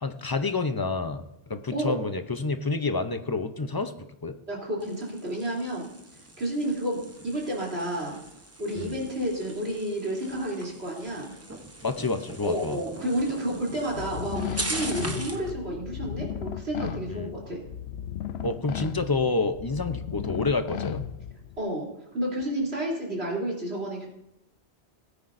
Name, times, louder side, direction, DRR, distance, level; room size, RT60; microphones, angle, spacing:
voice 1, 0.0-1.2 1.5-4.3 8.8-8.9 11.8-12.8 15.0-15.2 17.1-17.3 18.4-21.0, left 3 dB, 25° left, 8 dB, 0.5 m, -28 dB
voice 2, 4.5-5.9 6.4-8.2 8.6-11.3 12.4-17.6 21.6-21.9 22.1-24.1, right 1 dB, 70° right, -4 dB, 3.6 m, -30 dB
sound 1, 4.8-15.5, right 1 dB, 15° right, 0.8 m, -41 dB
sound 2, 13.9-21.6, left 10 dB, 75° left, 0.8 m, -35 dB
18.0 x 9.9 x 2.6 m, 0.85 s
omnidirectional pair, 1.1 m